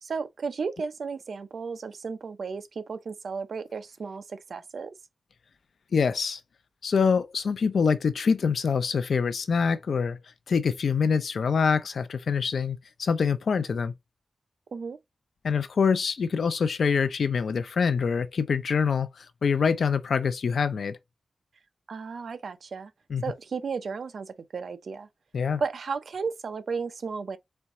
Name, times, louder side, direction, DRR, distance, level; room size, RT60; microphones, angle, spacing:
voice 1, 0.0-4.9 14.7-15.0 21.9-22.9 23.2-25.1 25.6-27.4, right 5 dB, 75° right, 0.6 m, -34 dB
voice 2, 5.9-6.4 6.8-10.2 10.5-13.9 15.4-21.0 23.1-23.2 25.3-25.6, left 5 dB, 80° left, 0.5 m, -25 dB
4.4 x 3.5 x 2.9 m
wide cardioid pair, 120°, 0 cm